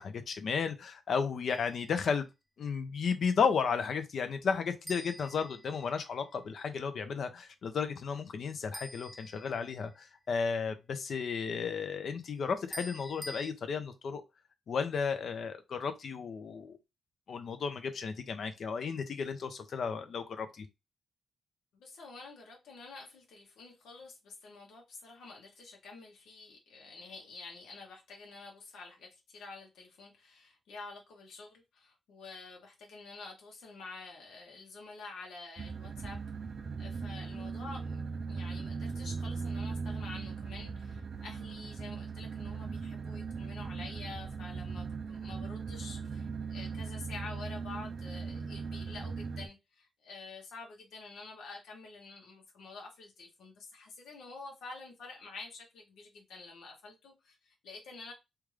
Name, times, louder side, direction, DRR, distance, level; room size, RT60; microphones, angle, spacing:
voice 1, 0.0-2.3 2.6-14.2 14.7-16.8 17.3-20.7, left 6 dB, 60° left, 0.6 m, -33 dB
sound 1, 1.5-1.9 4.9-6.2 8.7-10.0 12.7-13.5, right 1 dB, 5° right, 0.6 m, -47 dB
voice 2, 21.7-36.2 36.8-38.0 38.3-58.1, left 3 dB, 90° left, 1.0 m, -48 dB
sound 2, 35.6-49.5, right 5 dB, 50° right, 0.4 m, -39 dB
3.4 x 2.4 x 3.2 m
cardioid pair, 110°, 0 cm